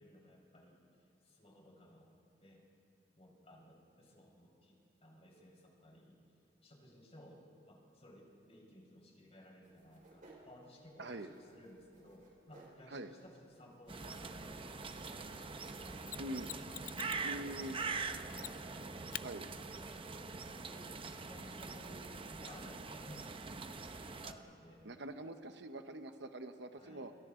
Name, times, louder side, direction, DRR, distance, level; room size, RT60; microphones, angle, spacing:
voice 1, 0.0-2.6 3.2-6.2 6.6-16.6 17.0-17.9 18.3-19.3 19.6-19.7 20.1-20.9 21.3-23.4 23.9-24.9 26.7-27.2, equal, 35° left, -1 dB, 4.9 m, -58 dB
sound 1, 9.6-18.0, right 1 dB, 45° right, 4.9 m, -64 dB
voice 2, 11.0-11.3 12.9-13.1 16.2-16.5 17.2-17.8 19.2-19.5 24.8-27.1, right 1 dB, 65° right, 8 dB, 1.0 m, -44 dB
sound 2, 13.9-24.3, right 4 dB, 30° right, 0.8 m, -44 dB
Mechanisms, 16.1-17.3 18.4-18.8 19.1-19.3 22.0-22.1, left 13 dB, 50° left, 0.4 m, -46 dB
28.5 x 27.5 x 3.8 m, 2.6 s
head